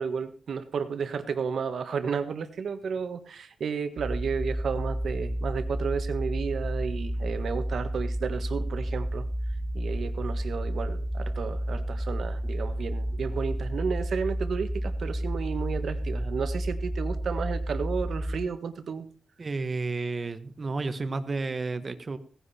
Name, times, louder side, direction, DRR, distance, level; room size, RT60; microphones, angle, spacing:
voice 1, 0.0-9.2 9.7-19.1, right 6 dB, 65° right, 10 dB, 1.5 m, -32 dB
sound 1, 4.0-18.4, right 1 dB, 15° right, 1.7 m, -31 dB
voice 2, 19.4-22.2, right 3 dB, 35° right, 10 dB, 1.2 m, -31 dB
17.0 x 10.5 x 4.3 m, 0.41 s
wide cardioid pair, 130°, 0 cm